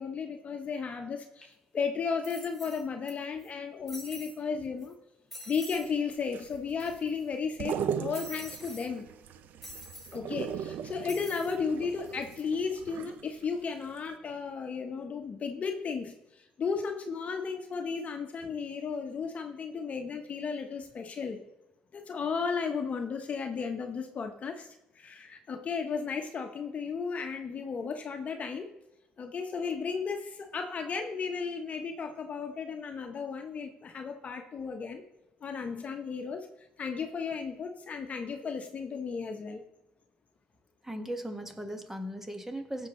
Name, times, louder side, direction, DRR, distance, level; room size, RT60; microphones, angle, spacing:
voice 1, 0.0-4.9 5.5-9.1 10.1-21.4 21.9-24.7 24.9-28.7 29.2-35.0 35.4-36.5 36.8-39.6, left 5 dB, 45° left, 5 dB, 1.1 m, -34 dB
sound 1, 1.4-1.5 2.2-3.1 3.4-3.5 3.9-4.4 4.8-4.9 5.3-5.9 6.2-6.3 6.5-7.2 8.1-8.9 9.6-10.2 11.1-11.6 12.0-12.4, equal, 5° left, 3.6 m, -46 dB
sound 2, 5.7-13.6 14.0-14.1, right 8 dB, 65° right, 0.6 m, -38 dB
voice 2, 40.8-42.9, equal, 10° right, 5 dB, 1.7 m, -38 dB
15.5 x 6.4 x 3.2 m, 0.92 s
supercardioid pair, 65°, 3 cm